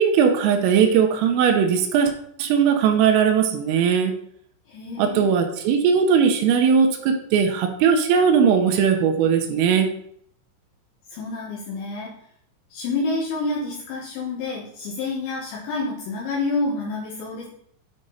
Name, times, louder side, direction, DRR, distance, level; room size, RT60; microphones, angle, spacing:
voice 1, 0.0-2.1 2.4-4.1 5.0-9.9, right 7 dB, 85° right, 5 dB, 3.4 m, -19 dB
voice 2, 4.7-5.3 11.1-12.1 12.7-17.5, left 3 dB, 70° left, -4 dB, 3.3 m, -28 dB
9.2 x 5.1 x 4.0 m, 0.66 s
omnidirectional pair, 5.8 m